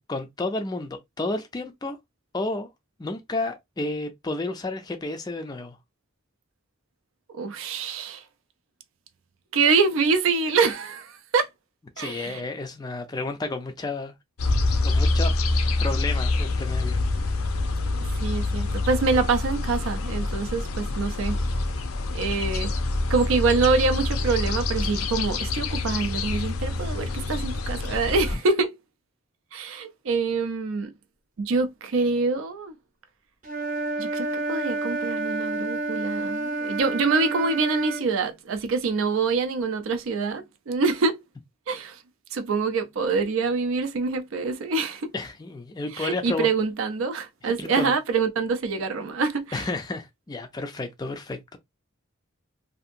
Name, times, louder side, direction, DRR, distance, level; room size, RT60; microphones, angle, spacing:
voice 1, 0.0-2.0 2.3-2.7 3.0-5.8 12.0-14.1 14.8-15.3 15.8-17.0 45.1-46.5 47.4-47.9 49.5-51.6, left 2 dB, 20° left, 0.3 m, -31 dB
voice 2, 7.3-8.2 9.5-11.5 12.0-12.4 18.2-21.4 22.1-22.7 23.1-28.7 29.5-30.9 31.4-32.7 34.0-41.2 41.7-42.0 42.3-45.1 45.9-49.6, right 4 dB, 70° right, 0.4 m, -25 dB
sound 1, 14.4-28.4, left 2 dB, 85° left, 0.5 m, -26 dB
Wind instrument woodwind instrument, 33.4-38.1, right 3 dB, 40° right, 0.7 m, -29 dB
2.7 x 2.5 x 2.5 m
head